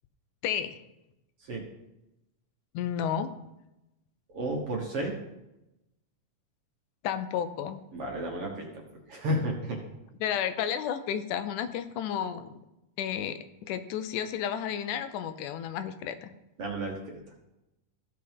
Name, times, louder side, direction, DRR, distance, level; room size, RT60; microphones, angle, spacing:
voice 1, 0.4-0.8 2.7-3.3 7.0-7.8 10.2-12.5 13.0-16.3, left 9 dB, 80° left, 10 dB, 2.1 m, -32 dB
voice 2, 4.3-5.2 7.9-9.8 16.6-17.0 17.3-17.4, right 1 dB, 55° right, 0 dB, 1.8 m, -32 dB
15.0 x 6.7 x 3.5 m, 0.92 s
omnidirectional pair, 3.7 m